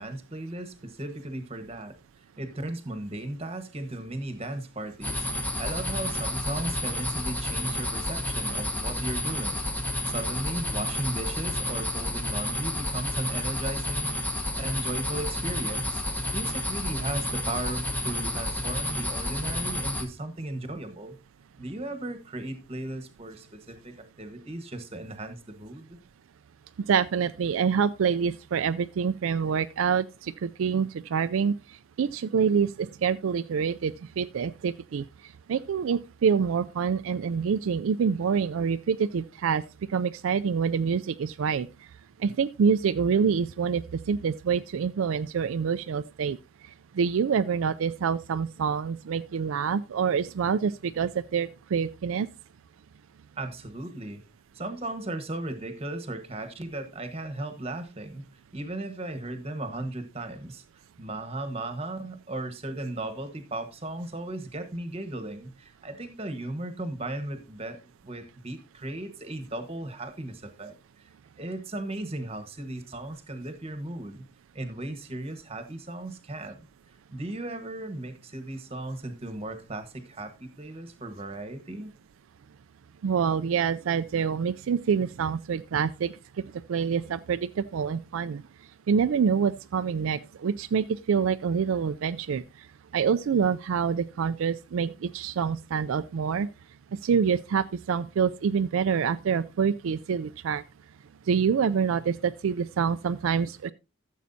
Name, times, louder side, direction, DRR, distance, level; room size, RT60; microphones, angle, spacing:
voice 1, 0.0-14.1 14.5-16.0 16.3-21.2 21.6-26.0 53.4-54.2 54.5-58.2 58.5-60.6 61.0-70.8 71.4-74.2 74.5-76.6 77.1-81.9, right 1 dB, 30° right, 1.2 m, -36 dB
sound 1, 5.0-20.0, left 1 dB, 5° left, 1.1 m, -30 dB
voice 2, 26.9-31.6 32.0-35.1 35.5-39.6 39.9-41.7 42.2-43.8 44.1-46.4 46.9-52.3 83.0-86.1 86.7-88.4 88.9-92.4 92.9-96.5 97.0-100.6 101.3-103.7, right 6 dB, 75° right, 0.4 m, -26 dB
13.5 x 7.3 x 2.7 m
head